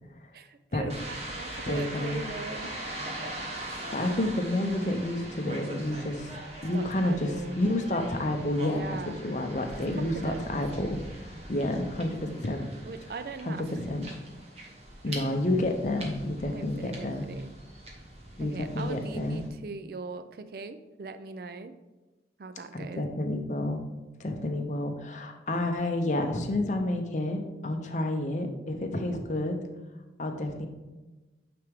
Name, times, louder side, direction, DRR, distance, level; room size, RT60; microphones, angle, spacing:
voice 1, 0.3-2.7 6.7-7.6 8.6-9.2 10.0-10.5 12.9-13.7 15.1-15.2 16.5-17.5 18.4-21.7 22.4-23.1, right 4 dB, 55° right, 11 dB, 0.4 m, -40 dB
sound 1, 0.9-19.5, right 1 dB, 35° right, 1.1 m, -42 dB
voice 2, 1.6-2.2 3.9-6.4 6.6-11.0 11.5-12.7 13.5-14.0 15.0-17.2 18.4-19.4 22.8-23.8 24.2-29.6 30.2-30.7, left 1 dB, 45° left, 4 dB, 0.6 m, -30 dB
9.0 x 3.4 x 3.5 m, 1.2 s
head